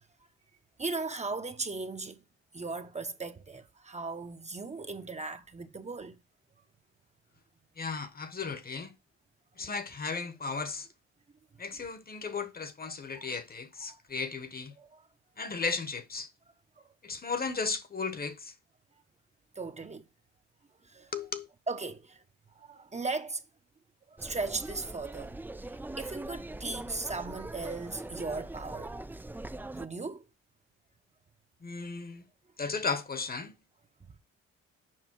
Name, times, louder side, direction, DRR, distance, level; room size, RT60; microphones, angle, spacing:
voice 1, 0.8-2.2 2.5-6.1 13.1-13.3 14.8-15.0 16.8-16.9 19.6-20.0 20.9-21.1 21.7-22.2 22.6-23.4 24.1-25.4 26.0-28.9 29.7-30.2, right 3 dB, 25° right, 0.9 m, -37 dB
voice 2, 7.8-8.9 9.6-10.9 11.6-14.7 15.4-16.3 17.0-18.5 21.1-21.5 31.6-32.2 32.6-33.5, left 4 dB, 30° left, 1.1 m, -35 dB
sound 1, 24.2-29.9, right 2 dB, 5° right, 0.4 m, -42 dB
7.5 x 5.4 x 4.6 m
cardioid pair, 90°, 30 cm